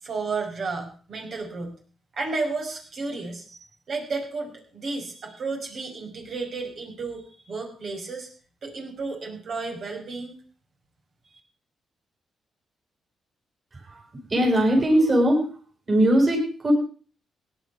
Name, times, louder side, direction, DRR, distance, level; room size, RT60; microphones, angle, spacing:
voice 1, 0.0-1.7 2.1-3.6 3.9-8.3 8.6-10.4 11.3-11.4, right 3 dB, 65° right, 2 dB, 5.4 m, -32 dB
voice 2, 14.3-15.4 15.9-16.7, right 1 dB, 40° right, 0 dB, 8.0 m, -20 dB
17.0 x 10.5 x 5.7 m, 0.40 s
supercardioid pair, 55°, 0 cm